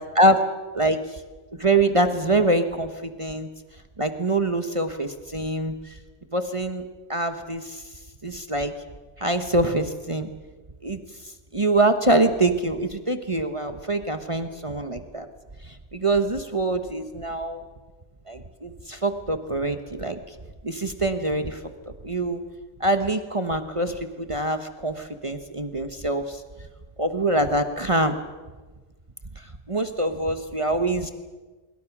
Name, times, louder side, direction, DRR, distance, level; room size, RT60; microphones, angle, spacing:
voice 1, 1.6-3.5 4.0-5.9 6.3-6.8 7.1-7.8 8.2-8.7 9.2-10.3 10.8-11.0 11.5-15.3 15.6-17.6 18.3-20.2 20.6-21.6 22.0-22.4 22.8-26.4 27.0-28.2 29.7-31.1, right 2 dB, 25° right, 8 dB, 1.2 m, -24 dB
25.5 x 22.5 x 6.1 m, 1.3 s
omnidirectional pair, 1.3 m